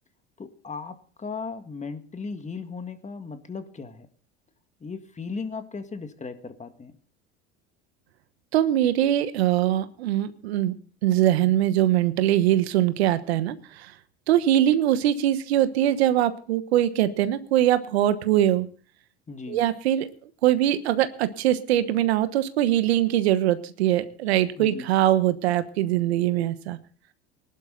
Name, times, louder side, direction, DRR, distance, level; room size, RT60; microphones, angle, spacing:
voice 1, 0.4-4.1 4.8-7.0 19.3-19.6 24.6-24.9, left 4 dB, 20° left, 8 dB, 1.9 m, -36 dB
voice 2, 8.5-10.7 11.0-13.9 14.3-18.7 19.5-20.1 20.4-26.8, right 12 dB, 85° right, 12 dB, 1.2 m, -22 dB
19.5 x 11.5 x 3.9 m, 0.41 s
hypercardioid pair, 80°, 31 cm